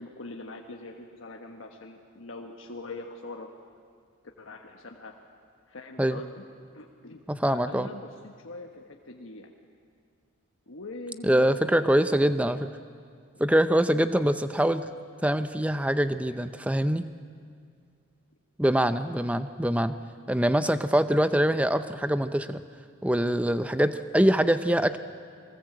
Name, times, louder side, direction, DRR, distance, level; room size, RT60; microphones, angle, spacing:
voice 1, 0.0-3.5 4.4-5.1 5.7-6.4 6.7-9.5 10.7-12.8 13.3-13.4 20.2-20.4 23.8-24.0, left 2 dB, 75° left, 2 dB, 1.3 m, -43 dB
voice 2, 7.3-7.9 11.2-12.7 13.4-14.9 15.2-17.1 18.6-20.0 20.3-22.6 23.0-25.0, right 1 dB, 5° right, 11 dB, 0.6 m, -24 dB
22.5 x 19.5 x 7.9 m, 2.2 s
head